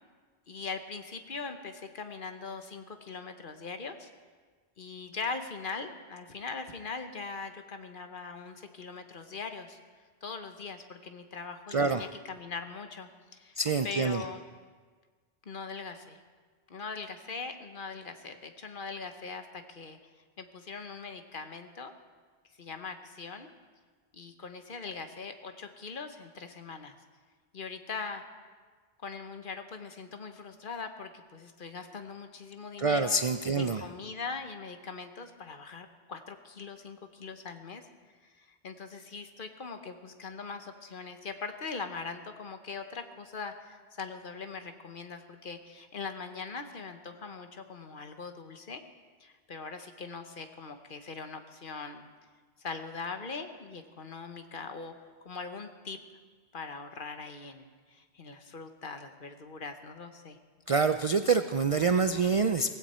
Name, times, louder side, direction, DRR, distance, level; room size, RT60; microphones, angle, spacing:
voice 1, 0.5-4.1 4.8-9.8 10.2-13.6 13.8-14.4 15.4-16.2 16.7-20.0 20.4-21.9 22.6-23.5 24.1-27.0 27.5-28.2 29.0-33.2 33.5-37.8 38.2-48.8 49.2-52.1 52.6-54.9 55.2-56.0 56.5-60.4, left 4 dB, 55° left, 7 dB, 1.1 m, -41 dB
voice 2, 11.7-12.1 13.6-14.2 32.8-33.8 60.7-62.7, right 4 dB, 55° right, 9 dB, 0.4 m, -26 dB
17.0 x 16.0 x 4.3 m, 1.5 s
omnidirectional pair, 1.1 m